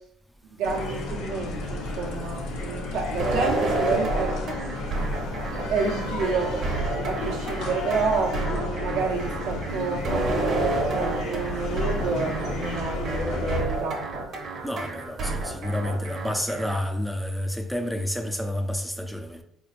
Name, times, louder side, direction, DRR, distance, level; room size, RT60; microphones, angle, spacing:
voice 1, 0.5-4.4 5.7-6.5 7.1-14.0, right 4 dB, 80° right, 0.9 m, -29 dB
sound 1, 0.6-13.6, left 2 dB, 80° left, 0.8 m, -32 dB
sound 2, 3.2-16.8, right 2 dB, 50° right, 1.0 m, -30 dB
voice 2, 14.6-19.4, left 1 dB, ahead, 0.5 m, -29 dB
4.0 x 3.1 x 2.5 m
supercardioid pair, 90°, 0 cm